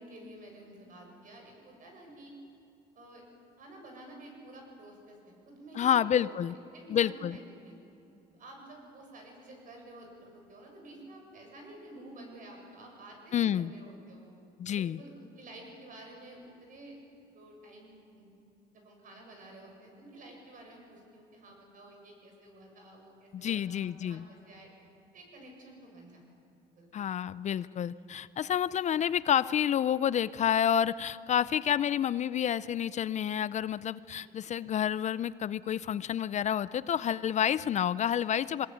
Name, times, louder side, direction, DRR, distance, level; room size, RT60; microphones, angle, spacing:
voice 1, 0.0-2.4 3.0-3.2 3.6-6.2 6.5-7.8 8.4-14.3 14.7-17.0 17.3-18.3 18.7-24.7 25.1-26.2 26.8-26.9 34.2-34.3, right 1 dB, 50° right, 1 dB, 7.6 m, -51 dB
voice 2, 5.8-6.5 6.9-7.4 13.3-13.7 14.6-15.0 23.3-24.2 26.9-38.7, left 9 dB, 45° left, 18 dB, 0.5 m, -29 dB
23.0 x 20.0 x 9.3 m, 2.8 s
cardioid pair, 110°, 17 cm